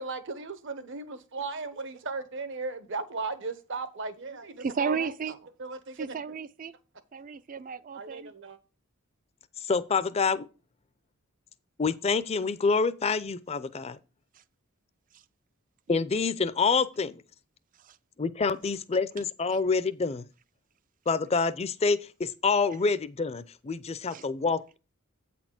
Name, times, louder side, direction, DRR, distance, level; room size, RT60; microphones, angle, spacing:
voice 1, 0.0-5.3 5.6-6.2 7.9-8.6, right 3 dB, 60° right, 1.0 m, -36 dB
voice 2, 4.6-5.4 6.0-6.7 7.1-8.3 17.8-18.0 24.1-24.3, right 6 dB, 40° right, 0.4 m, -33 dB
voice 3, 9.6-10.5 11.8-14.0 15.9-17.2 18.2-20.3 21.1-24.8, left 4 dB, 30° left, 0.5 m, -27 dB
8.5 x 4.3 x 5.9 m
head